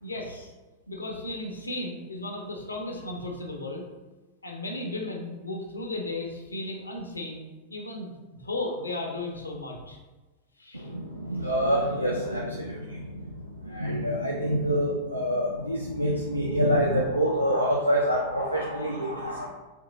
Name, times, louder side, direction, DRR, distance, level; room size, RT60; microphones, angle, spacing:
voice 1, 0.0-0.5 0.9-3.9 4.4-8.1 8.4-10.0 10.6-10.9, left 2 dB, 80° left, 1 dB, 0.7 m, -35 dB
voice 2, 10.7-19.5, equal, 90° right, -3 dB, 0.4 m, -27 dB
3.6 x 3.2 x 3.9 m, 1.2 s
figure-of-eight pair, 90°, 0 cm